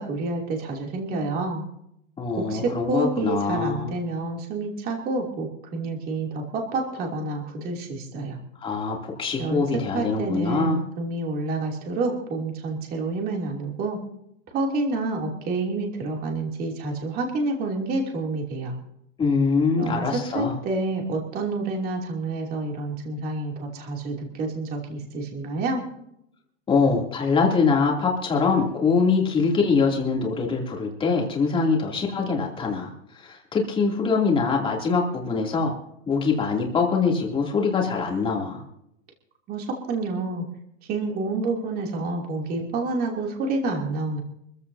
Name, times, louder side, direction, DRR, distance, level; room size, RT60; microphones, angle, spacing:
voice 1, 0.0-1.6 2.4-8.4 9.4-9.7 9.9-14.0 14.5-18.8 19.8-25.8 39.5-40.4 40.9-44.2, right 3 dB, 25° right, 0 dB, 2.9 m, -28 dB
voice 2, 2.2-3.9 8.6-10.8 19.2-20.5 26.7-35.7 36.1-38.6, left 4 dB, 15° left, -1 dB, 2.9 m, -23 dB
25.0 x 15.0 x 2.8 m, 0.77 s
supercardioid pair, 170°, 38 cm